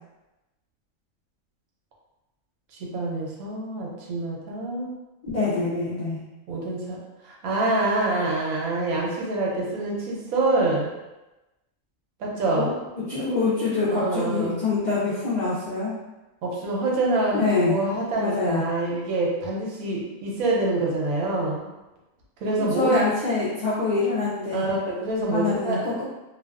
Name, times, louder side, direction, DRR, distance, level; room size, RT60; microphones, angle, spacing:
voice 1, 2.8-5.0 6.5-7.0 7.2-10.9 12.2-12.7 13.9-14.6 16.4-21.7 22.4-23.0 24.5-25.8, right 2 dB, 80° right, -3 dB, 1.0 m, -26 dB
voice 2, 5.2-6.2 12.6-15.9 17.3-17.8 18.2-18.6 22.7-24.6 25.3-26.0, left 3 dB, 60° left, -10 dB, 0.4 m, -25 dB
2.5 x 2.3 x 2.3 m, 1.0 s
omnidirectional pair, 1.5 m